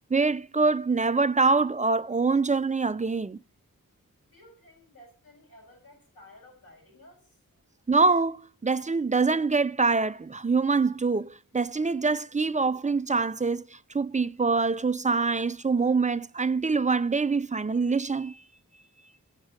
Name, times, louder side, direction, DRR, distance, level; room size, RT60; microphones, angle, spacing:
voice 1, 0.1-3.4 7.9-18.4, right 4 dB, 20° right, 0.4 m, -25 dB
voice 2, 4.3-7.4, left 1 dB, 80° left, 6.0 m, -54 dB
7.3 x 6.6 x 7.4 m
wide cardioid pair, 50°, 34 cm